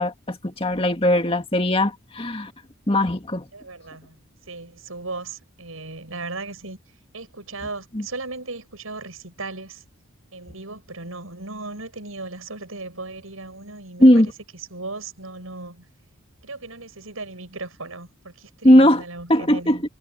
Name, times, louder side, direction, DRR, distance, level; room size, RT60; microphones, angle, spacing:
voice 1, 0.0-2.5 2.9-3.4 7.9-8.0 14.0-14.3 18.6-19.0 19.3-19.8, left 1 dB, 25° left, 2.0 m, -18 dB
voice 2, 3.5-4.2 4.5-6.8 7.1-9.8 10.3-14.3 14.7-15.8 16.4-19.8, right 3 dB, 80° right, 6.4 m, -36 dB
head